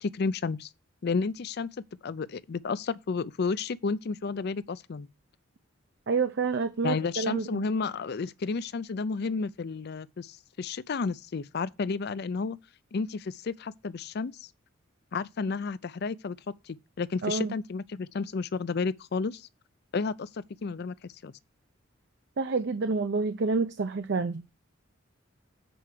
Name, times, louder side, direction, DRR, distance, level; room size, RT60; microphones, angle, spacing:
voice 1, 0.0-0.7 1.0-1.7 2.0-5.1 6.8-10.3 10.6-12.6 12.9-14.3 15.1-16.4 17.0-19.4 19.9-20.3 20.6-20.9 21.2-21.3, left 4 dB, 55° left, 0.4 m, -31 dB
voice 2, 6.1-7.7 17.2-17.6 22.4-24.4, right 4 dB, 60° right, 0.5 m, -28 dB
7.8 x 4.7 x 6.3 m
head